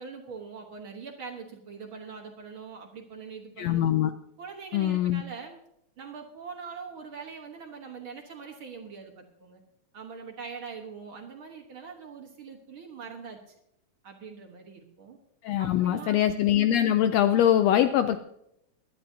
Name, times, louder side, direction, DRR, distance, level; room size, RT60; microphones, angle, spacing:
voice 1, 0.0-3.8 4.4-5.6 6.0-9.6 9.9-13.6 14.0-15.2 15.6-16.2, right 5 dB, 55° right, 2 dB, 1.7 m, -43 dB
voice 2, 3.6-4.1 4.7-5.2 15.4-18.2, left 11 dB, 80° left, 9 dB, 1.5 m, -23 dB
21.0 x 11.0 x 2.7 m, 0.77 s
omnidirectional pair, 3.4 m